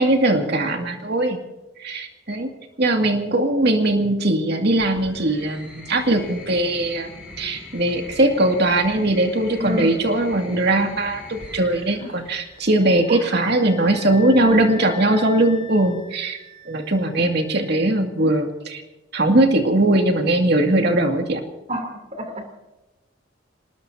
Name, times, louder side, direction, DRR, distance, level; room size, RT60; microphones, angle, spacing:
voice 1, 0.0-1.4 1.8-2.5 2.8-16.4 16.7-18.8 19.1-21.4, right 1 dB, 60° right, 3 dB, 2.3 m, -20 dB
sound 1, 4.8-13.2 14.4-15.0, left 2 dB, 5° right, 7.1 m, -42 dB
voice 2, 9.6-10.0 11.9-12.1 13.1-13.2 14.5-14.6 21.7-22.4, equal, 40° right, 5 dB, 3.1 m, -29 dB
sound 2, 11.3-18.1, left 5 dB, 40° left, 3.5 m, -42 dB
26.5 x 19.5 x 2.8 m, 1.1 s
head